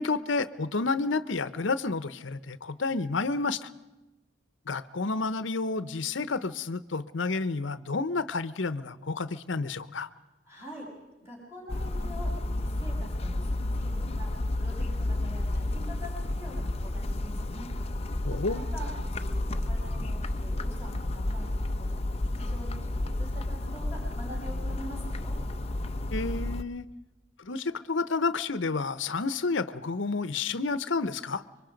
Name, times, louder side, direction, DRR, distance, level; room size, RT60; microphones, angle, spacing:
voice 1, 0.0-3.7 4.7-10.1 18.2-18.6 26.1-26.9 27.4-31.4, left 3 dB, 80° left, 15 dB, 0.9 m, -30 dB
voice 2, 10.4-10.9 11.2-17.7 18.3-18.9 19.1-21.9 22.2-25.4, equal, 15° right, -4 dB, 6.2 m, -45 dB
sound 1, 11.7-26.6, left 1 dB, 35° left, 0.7 m, -31 dB
26.0 x 23.5 x 5.2 m, 1.1 s
head